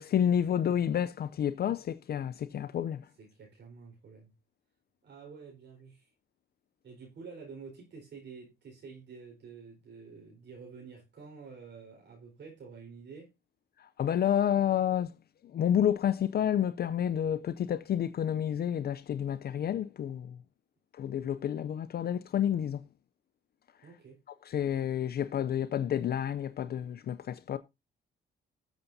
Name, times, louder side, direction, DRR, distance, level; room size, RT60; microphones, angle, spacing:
voice 1, 0.0-3.1 13.8-15.1 15.5-20.4 20.9-22.8 24.4-27.6, left 9 dB, 50° left, 0.5 m, -29 dB
voice 2, 3.2-4.3 5.0-6.1 6.8-13.3 23.8-24.2, right 5 dB, 60° right, 4.5 m, -49 dB
19.0 x 7.1 x 2.7 m
cardioid pair, 90°, 20 cm